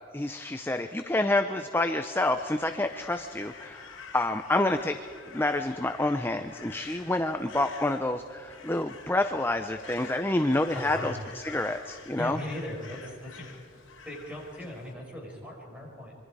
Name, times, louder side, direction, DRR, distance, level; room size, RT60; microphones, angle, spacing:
voice 1, 0.1-5.0 5.3-11.1 11.4-12.4, left 2 dB, 10° left, 8 dB, 0.6 m, -28 dB
Crow, 2.2-14.9, left 5 dB, 60° left, 3.1 m, -48 dB
voice 2, 10.7-11.1 12.2-13.5 14.1-16.1, left 1 dB, 5° right, -2 dB, 5.4 m, -38 dB
26.0 x 24.0 x 4.9 m, 2.4 s
head